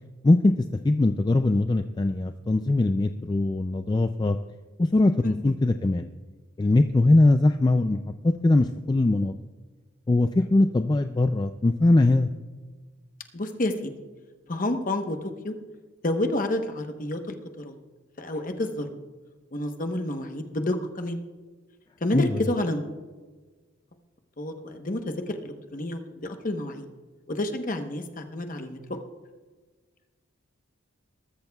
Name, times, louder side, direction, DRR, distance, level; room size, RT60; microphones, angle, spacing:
voice 1, 0.8-4.4 4.8-6.1 6.6-8.0 8.2-9.3 10.1-12.3 22.1-22.4, left 2 dB, 20° left, 8 dB, 0.3 m, -21 dB
voice 2, 5.2-5.5 13.3-13.9 14.5-15.2 15.4-15.5 16.0-17.2 17.6-17.7 18.2-18.9 19.5-21.2 22.0-22.9 24.4-26.9 27.3-29.0, left 1 dB, 40° left, 5 dB, 1.0 m, -29 dB
20.5 x 13.5 x 2.3 m, 1.4 s
head